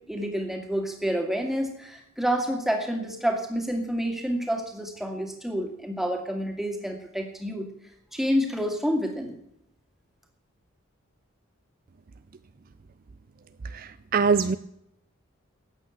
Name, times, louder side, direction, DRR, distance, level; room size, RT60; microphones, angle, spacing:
voice 1, 0.1-7.7 8.1-9.4, equal, ahead, 2 dB, 2.3 m, -28 dB
voice 2, 13.6-14.6, right 5 dB, 40° right, 13 dB, 0.4 m, -24 dB
14.0 x 9.0 x 8.1 m, 0.76 s
head